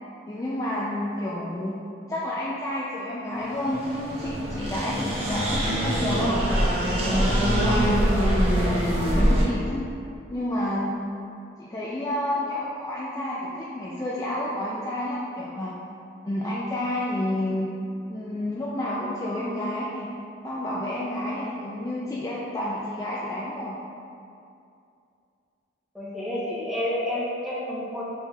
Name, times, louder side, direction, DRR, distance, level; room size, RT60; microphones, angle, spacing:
voice 1, 0.3-1.7 2.1-6.4 7.0-8.8 9.1-9.9 10.3-11.0 11.6-15.7 16.2-17.7 18.1-20.1 20.4-23.8, left 1 dB, 15° left, -7 dB, 0.3 m, -30 dB
sound 1, 3.5-9.4, equal, 30° right, 0.8 m, -23 dB
voice 2, 25.9-28.0, left 1 dB, ahead, -8 dB, 0.8 m, -29 dB
5.4 x 4.2 x 2.3 m, 2.5 s
head